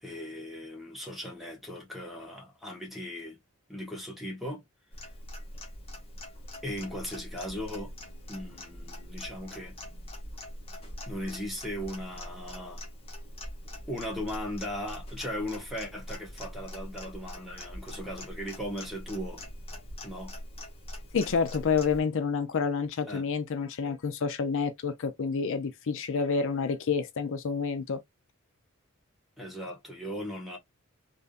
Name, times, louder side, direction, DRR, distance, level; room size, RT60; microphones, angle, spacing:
voice 1, 0.0-3.4 3.7-4.6 6.6-7.9 8.3-9.7 11.1-12.8 13.9-19.4 20.0-20.3 23.1-23.2 29.4-30.6, equal, ahead, 1.3 m, -38 dB
Clock, 4.9-22.0, left 1 dB, 25° left, 1.2 m, -43 dB
voice 2, 21.1-28.0, left 5 dB, 65° left, 0.5 m, -29 dB
3.4 x 2.6 x 2.4 m
head